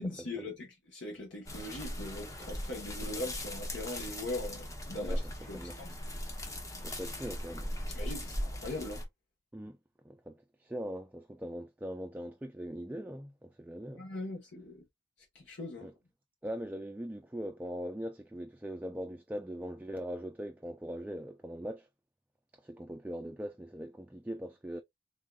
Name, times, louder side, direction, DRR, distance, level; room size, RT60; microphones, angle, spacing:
voice 1, 0.0-5.2 5.5-5.9 7.9-9.0 14.0-14.8 15.3-15.9, left 2 dB, 70° left, 1.2 m, -40 dB
sound 1, 1.4-9.0, equal, 20° left, 0.8 m, -39 dB
voice 2, 5.0-5.8 6.8-7.7 9.5-9.8 10.0-14.0 15.8-15.9 16.4-21.9 22.5-24.8, equal, 10° right, 0.3 m, -41 dB
3.6 x 3.6 x 2.3 m
head